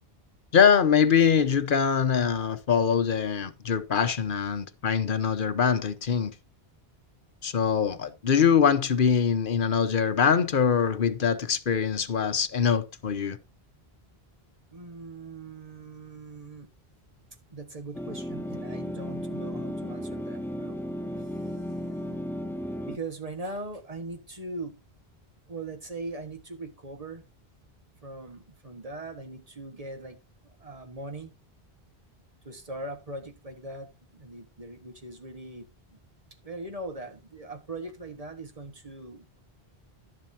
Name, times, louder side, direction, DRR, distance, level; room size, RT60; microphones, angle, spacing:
voice 1, 0.5-6.3 7.4-13.4, left 7 dB, 60° left, 1.0 m, -23 dB
voice 2, 14.7-16.7 17.5-20.8 21.2-21.3 22.9-24.8 25.5-27.2 28.0-30.2 30.4-31.3 32.4-36.0 36.4-39.3, right 2 dB, 35° right, 1.6 m, -40 dB
sound 1, 17.9-23.0, equal, 5° left, 0.3 m, -34 dB
11.5 x 11.0 x 2.8 m
omnidirectional pair, 1.0 m